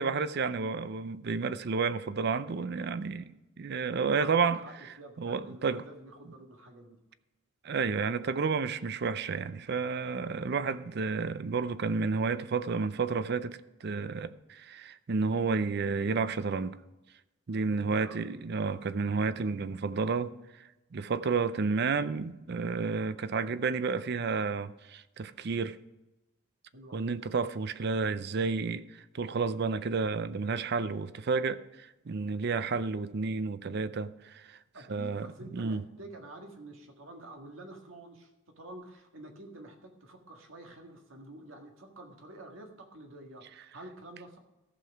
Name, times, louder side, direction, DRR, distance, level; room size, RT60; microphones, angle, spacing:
voice 1, 0.0-4.6 5.2-5.8 7.6-16.8 17.5-25.8 26.9-34.6 34.9-35.8, right 4 dB, 55° right, 0.5 m, -31 dB
voice 2, 3.8-7.0 17.7-18.4 26.7-27.2 34.7-38.3 38.6-44.4, right 1 dB, 80° right, 1.8 m, -48 dB
15.0 x 5.9 x 4.6 m
head